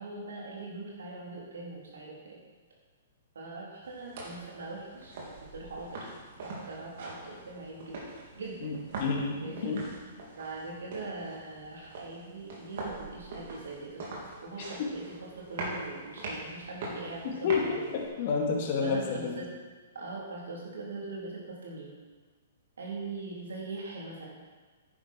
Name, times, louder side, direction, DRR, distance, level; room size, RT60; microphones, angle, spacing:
voice 1, 0.0-2.4 3.3-6.0 6.4-8.0 8.3-8.6 9.4-9.8 10.3-15.0 15.4-18.1 18.8-19.5 19.9-21.9 22.8-24.3, right 3 dB, 70° right, -4 dB, 3.8 m, -41 dB
sound 1, 3.8-18.1, right 2 dB, 55° right, 3.2 m, -43 dB
voice 2, 8.6-9.9 14.8-14.9 17.4-19.4, left 5 dB, 50° left, 1 dB, 2.2 m, -30 dB
10.5 x 9.9 x 4.6 m, 1.4 s
figure-of-eight pair, 115°, 0 cm